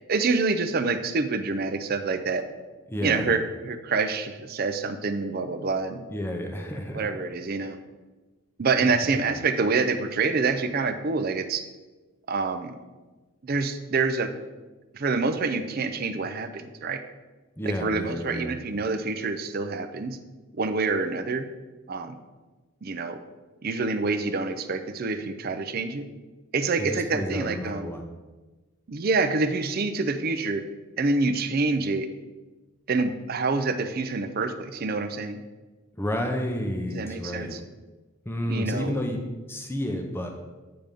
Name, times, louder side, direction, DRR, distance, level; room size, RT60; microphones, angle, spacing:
voice 1, 0.1-2.5 3.0-6.1 6.9-7.8 8.6-11.6 12.3-12.7 13.4-14.3 14.9-17.0 17.7-20.2 20.6-21.4 21.9-22.2 22.8-23.2 23.6-26.1 26.5-27.9 28.9-30.6 31.0-32.1 32.9-35.4 36.9-37.6 38.5-39.0, right 4 dB, 45° right, 9 dB, 0.4 m, -27 dB
voice 2, 2.9-3.3 6.1-7.1 7.6-7.8 8.8-8.9 9.3-9.4 17.6-18.5 26.8-28.1 36.0-37.5 38.3-39.2 39.5-40.3, equal, 10° left, 3 dB, 0.6 m, -31 dB
8.8 x 3.5 x 5.2 m, 1.2 s
head